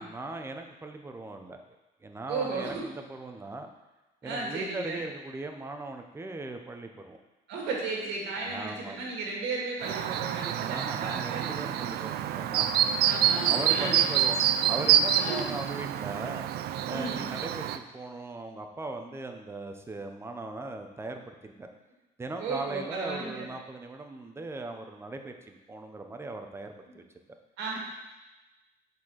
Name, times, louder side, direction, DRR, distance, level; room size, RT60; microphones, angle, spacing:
voice 1, 0.0-1.6 2.0-3.7 4.2-7.2 8.4-9.0 10.6-16.4 16.9-21.7 22.2-27.0, right 2 dB, 15° right, 5 dB, 0.7 m, -39 dB
voice 2, 2.3-2.8 4.2-5.0 7.5-11.7 13.0-14.0 15.1-15.4 16.9-17.3 22.4-23.5 27.6-27.8, right 3 dB, 90° right, -2 dB, 2.0 m, -34 dB
Chirp tweet, 9.8-17.8, right 10 dB, 70° right, 0.4 m, -27 dB
6.0 x 4.4 x 6.3 m, 1.1 s
cardioid pair, 110°, 17 cm